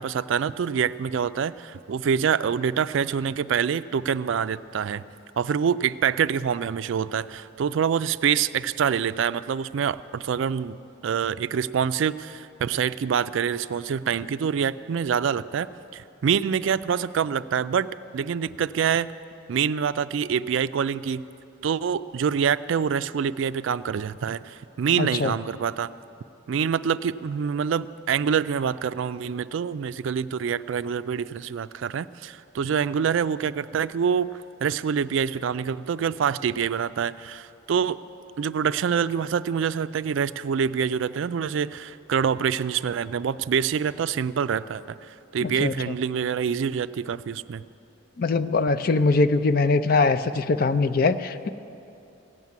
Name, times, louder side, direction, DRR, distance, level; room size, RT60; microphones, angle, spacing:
voice 1, 0.0-5.0 5.4-10.8 11.0-15.7 15.9-17.9 18.1-19.1 19.5-21.2 21.6-25.9 26.5-38.0 38.4-47.6, right 7 dB, 70° right, 14 dB, 0.3 m, -26 dB
voice 2, 25.0-25.3 45.6-45.7 48.2-51.5, left 3 dB, 45° left, 11 dB, 0.4 m, -22 dB
16.0 x 7.4 x 9.4 m, 2.7 s
head